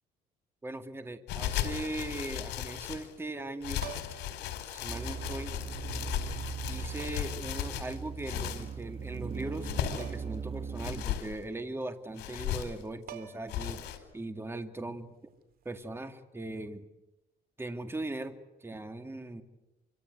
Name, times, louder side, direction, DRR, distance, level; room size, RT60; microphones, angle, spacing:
voice 1, 0.6-3.8 4.7-5.5 6.7-15.1 15.6-16.8 17.6-19.4, right 2 dB, 15° right, 7 dB, 2.3 m, -39 dB
sound 1, 1.3-3.1 3.6-8.7 9.4-10.2 10.8-11.3 12.2-12.8 13.5-14.0, left 11 dB, 80° left, 4.8 m, -36 dB
sound 2, 3.8-4.4 5.7-5.8 7.0-7.4 10.0-10.4 10.7-10.8 12.7-12.8 13.1-13.7 15.6-15.8, right 9 dB, 60° right, 3.3 m, -46 dB
sound 3, 4.9-11.1, right 6 dB, 35° right, 2.1 m, -39 dB
27.5 x 26.0 x 8.2 m, 0.99 s
cardioid pair, 110°, 17 cm